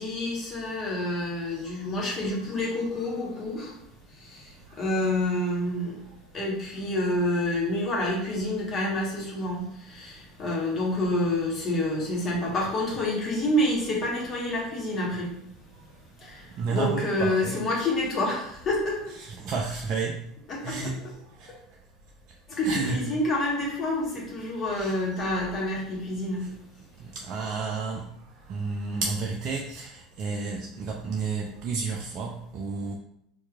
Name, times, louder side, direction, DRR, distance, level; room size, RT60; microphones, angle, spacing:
voice 1, 0.0-3.7 4.2-6.0 6.3-15.3 16.2-19.0 20.5-20.8 22.5-26.4, left 1 dB, 40° left, -3 dB, 1.4 m, -28 dB
voice 2, 16.6-17.6 19.1-20.2 20.6-21.0 21.4-21.5 22.6-23.0 24.8-24.9 27.0-28.1 28.5-32.9, right 4 dB, 50° right, 0 dB, 0.4 m, -31 dB
4.4 x 2.7 x 2.4 m, 0.72 s
hypercardioid pair, 75°, 0 cm